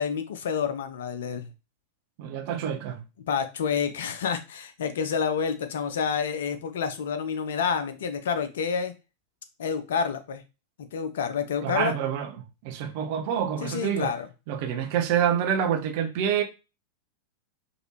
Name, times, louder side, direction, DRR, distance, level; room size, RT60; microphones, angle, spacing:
voice 1, 0.0-1.5 3.3-8.9 9.6-10.4 10.9-11.9 13.6-14.3, left 6 dB, 60° left, 0.5 m, -28 dB
voice 2, 2.2-3.0 11.6-12.3 12.6-14.1 14.5-16.4, right 8 dB, 45° right, 0.7 m, -27 dB
4.8 x 2.6 x 3.0 m
figure-of-eight pair, 90°, 0 cm